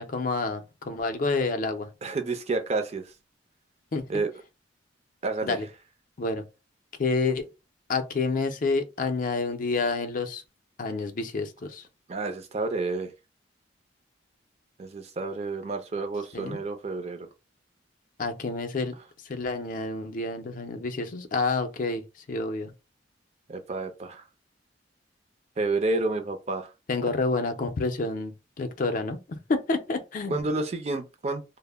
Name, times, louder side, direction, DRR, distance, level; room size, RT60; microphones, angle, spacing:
voice 1, 0.0-1.9 3.9-4.0 5.4-5.7 6.2-6.4 7.0-7.5 7.9-10.4 10.8-11.8 16.3-16.6 18.2-18.9 19.3-22.7 26.9-28.3 28.6-30.4, left 3 dB, 45° left, 0.4 m, -28 dB
voice 2, 2.0-3.1 4.1-4.3 5.2-5.6 12.1-13.1 14.8-17.3 23.5-24.2 25.6-26.7 30.3-31.4, right 3 dB, 35° right, 0.4 m, -30 dB
2.1 x 2.0 x 3.3 m
head